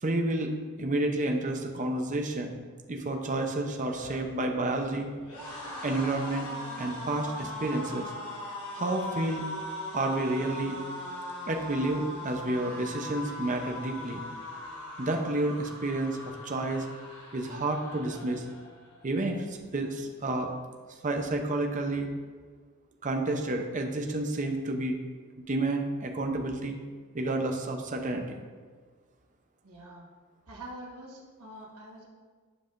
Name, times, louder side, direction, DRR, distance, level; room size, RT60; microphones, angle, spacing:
voice 1, 0.0-2.6 2.9-5.1 5.8-6.5 6.8-8.1 8.7-9.5 9.9-10.8 11.5-14.2 15.0-16.9 17.3-18.4 19.0-20.5 21.0-22.1 23.0-25.0 25.4-26.8 27.1-28.4, right 2 dB, 35° right, 3 dB, 0.7 m, -30 dB
loud drawn out echoing scream, 3.8-19.0 19.4-19.6 19.8-20.6, left 1 dB, 75° left, 1.9 m, -40 dB
voice 2, 29.6-30.0 30.5-32.1, right 1 dB, 75° right, -3 dB, 1.5 m, -45 dB
9.9 x 5.5 x 2.5 m, 1.5 s
head